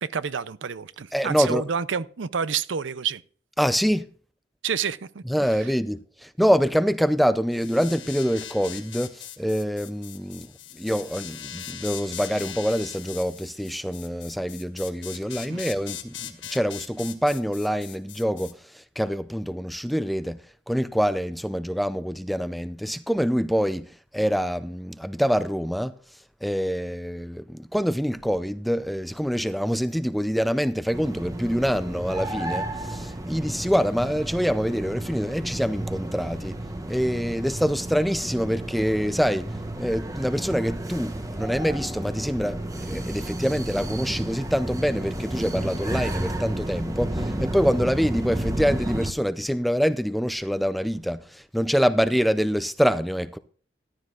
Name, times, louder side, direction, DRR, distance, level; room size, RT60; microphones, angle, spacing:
voice 1, 0.0-3.2 4.6-5.2 15.5-15.6, right 6 dB, 80° right, 0.6 m, -29 dB
voice 2, 1.1-1.6 3.6-4.1 5.3-20.4 20.7-23.9 24.1-25.9 26.4-36.6 36.9-53.4, equal, ahead, 0.4 m, -25 dB
sound 1, 7.5-18.5, left 10 dB, 70° left, 1.5 m, -40 dB
sound 2, 30.9-49.1, right 1 dB, 20° right, 0.9 m, -32 dB
14.0 x 11.5 x 2.5 m
head